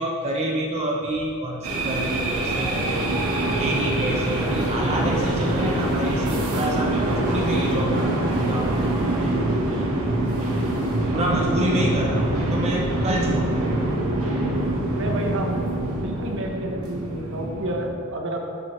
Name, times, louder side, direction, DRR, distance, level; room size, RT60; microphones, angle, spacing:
voice 1, 0.0-3.1 3.4-8.9 11.1-13.6, right 1 dB, 30° right, -1 dB, 0.6 m, -28 dB
sound 1, 1.6-17.9, right 1 dB, 80° right, 1.2 m, -24 dB
voice 2, 11.1-11.7 14.9-15.6 15.9-18.4, right 1 dB, 60° right, 2 dB, 0.9 m, -30 dB
11.5 x 4.5 x 3.2 m, 2.3 s
head